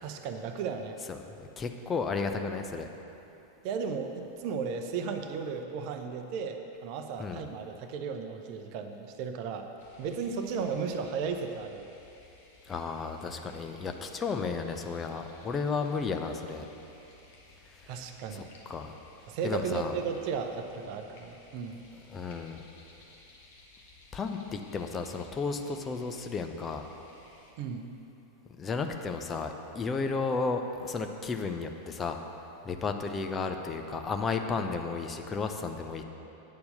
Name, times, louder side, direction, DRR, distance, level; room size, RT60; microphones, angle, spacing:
voice 1, 0.0-1.0 3.6-4.1 4.4-9.7 10.0-11.9 17.9-18.5 19.3-21.8 27.6-27.9, right 6 dB, 45° right, 6 dB, 0.7 m, -35 dB
voice 2, 1.1-2.9 7.2-7.4 12.6-16.7 17.7-19.0 19.4-20.0 22.1-22.6 24.1-26.8 28.6-32.2 32.6-36.0, left 4 dB, 20° left, 5 dB, 0.6 m, -33 dB
sound 1, 9.8-27.5, left 3 dB, 50° left, 1.6 m, -57 dB
9.3 x 7.0 x 6.6 m, 3.0 s
figure-of-eight pair, 90°, 0 cm